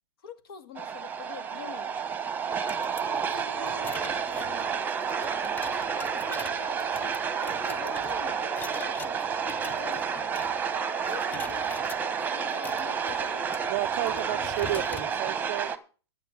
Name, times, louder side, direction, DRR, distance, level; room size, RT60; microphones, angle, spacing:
voice 1, 0.2-1.9 3.1-5.7 6.1-7.2 7.4-10.6 11.0-13.5 14.0-14.5, left 6 dB, 60° left, 2.0 m, -46 dB
sound 1, 0.7-15.8, right 6 dB, 15° right, 1.1 m, -30 dB
sound 2, 2.5-10.8 11.0-12.0 12.5-15.1, left 5 dB, 15° left, 0.5 m, -45 dB
voice 2, 13.7-15.7, right 17 dB, 40° right, 0.6 m, -31 dB
12.5 x 6.6 x 7.2 m
hypercardioid pair, 120°, 14 cm